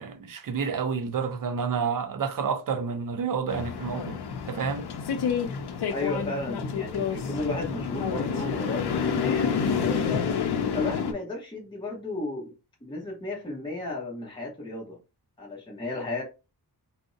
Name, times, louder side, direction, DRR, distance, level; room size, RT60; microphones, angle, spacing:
voice 1, 0.0-4.2 4.5-4.8, right 6 dB, 55° right, 0.5 m, -29 dB
sound 1, 3.5-11.1, left 6 dB, 80° left, 0.6 m, -28 dB
voice 2, 5.9-10.3 10.7-12.5 12.8-15.0 15.4-16.2, left 2 dB, 10° left, 0.8 m, -34 dB
2.5 x 2.0 x 3.7 m
wide cardioid pair, 150°, 38 cm